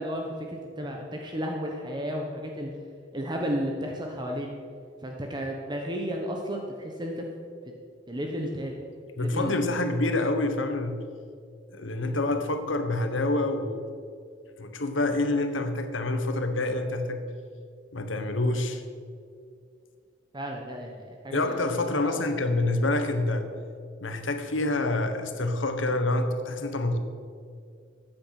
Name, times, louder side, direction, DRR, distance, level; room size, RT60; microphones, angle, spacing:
voice 1, 0.0-2.7 3.1-4.5 5.0-7.2 8.1-8.8 9.2-10.0 12.0-12.5 20.3-22.2, equal, 25° right, 1 dB, 1.1 m, -33 dB
voice 2, 9.2-11.1 11.7-13.8 14.6-17.3 17.9-18.8 21.3-23.5 24.0-27.0, left 2 dB, 85° left, 7 dB, 1.3 m, -27 dB
14.5 x 9.0 x 5.9 m, 2.3 s
head